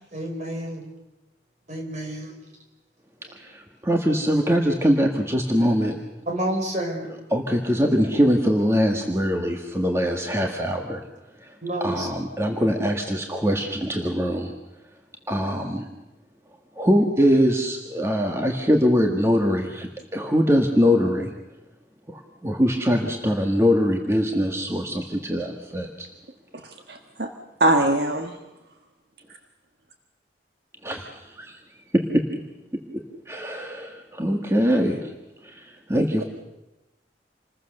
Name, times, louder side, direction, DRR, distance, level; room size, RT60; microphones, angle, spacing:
voice 1, 0.1-0.9 1.7-2.3 3.2-3.3 6.3-7.1 11.6-12.1, right 1 dB, 40° right, 2 dB, 5.3 m, -29 dB
voice 2, 3.3-5.9 7.3-11.0 11.4-11.5 11.8-14.5 15.3-15.9 16.7-21.3 22.1-26.1 30.8-31.6 31.9-32.2 33.3-35.1 35.4-36.2, equal, 15° right, 2 dB, 1.7 m, -22 dB
voice 3, 26.5-27.3 27.6-28.4, right 2 dB, 65° right, 5 dB, 1.6 m, -22 dB
28.0 x 21.0 x 6.7 m, 0.98 s
head